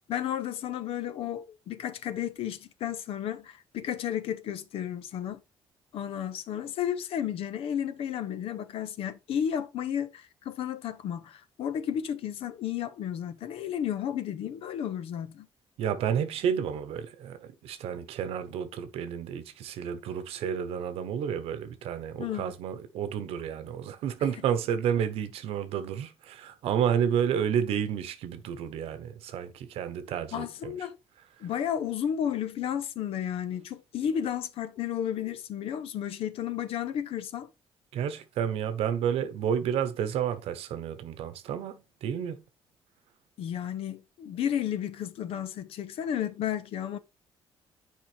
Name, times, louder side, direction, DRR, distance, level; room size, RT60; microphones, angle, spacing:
voice 1, 0.1-5.4 5.9-15.5 22.2-22.5 30.3-31.0 31.4-37.5 43.4-47.0, left 9 dB, 75° left, 0.8 m, -32 dB
voice 2, 15.8-30.8 37.9-42.4, right 8 dB, 90° right, 1.0 m, -31 dB
9.5 x 4.9 x 3.3 m
cardioid pair, 135°, 10 cm